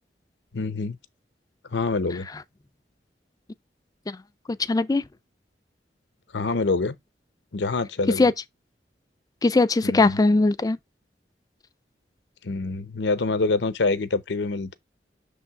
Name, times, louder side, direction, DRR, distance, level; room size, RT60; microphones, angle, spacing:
voice 1, 0.5-1.0 1.7-2.3 6.3-7.0 7.5-8.3 9.8-10.2 12.4-14.7, left 3 dB, 85° left, 0.8 m, -26 dB
voice 2, 4.7-5.0 8.2-8.3 9.4-10.8, left 3 dB, 20° left, 0.4 m, -20 dB
6.2 x 3.5 x 4.7 m
head